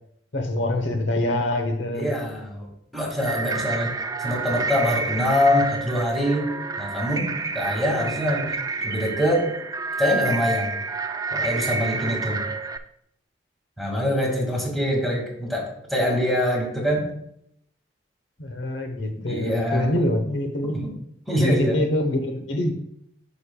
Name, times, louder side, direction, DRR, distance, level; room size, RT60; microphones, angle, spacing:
voice 1, 0.3-2.1 18.4-20.8 21.4-22.7, left 1 dB, 85° left, 5 dB, 1.0 m, -25 dB
voice 2, 1.9-2.7 2.9-6.5 6.8-9.5 10.0-10.7 11.3-12.4 13.8-17.1 19.2-19.9 20.6-20.9 21.3-21.8, left 1 dB, ahead, -1 dB, 1.9 m, -24 dB
sound 1, 3.2-12.8, right 4 dB, 20° right, 0.4 m, -29 dB
11.5 x 5.3 x 2.3 m, 0.71 s
head